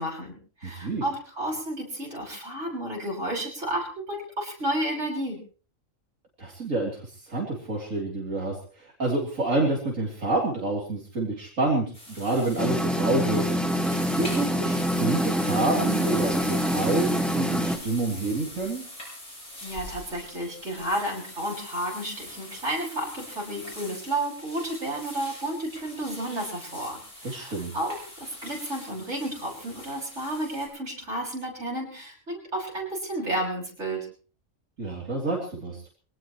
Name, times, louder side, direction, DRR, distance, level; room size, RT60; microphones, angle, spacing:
voice 1, 0.0-5.4 19.6-34.1, right 1 dB, 60° right, -2 dB, 6.9 m, -32 dB
voice 2, 0.6-1.0 6.4-6.9 7.3-13.4 14.2-18.8 27.2-27.7 34.8-35.9, right 2 dB, 80° right, -2 dB, 3.8 m, -28 dB
sound 1, 11.9-30.7, left 1 dB, 85° left, 8.3 m, -42 dB
sound 2, 12.6-17.8, equal, ahead, 2.0 m, -25 dB
24.5 x 18.0 x 3.1 m, 0.39 s
omnidirectional pair, 1.4 m